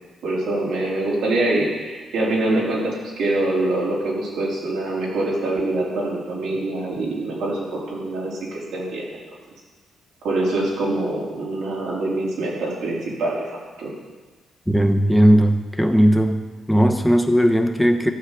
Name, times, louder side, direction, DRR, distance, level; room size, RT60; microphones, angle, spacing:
voice 1, 0.2-9.1 10.2-13.4 13.8-13.9, right 2 dB, 80° right, -5 dB, 4.0 m, -24 dB
voice 2, 14.7-16.4 16.7-18.1, equal, ahead, 4 dB, 1.1 m, -17 dB
14.5 x 7.3 x 5.0 m, 1.3 s
cardioid pair, 80°, 0 cm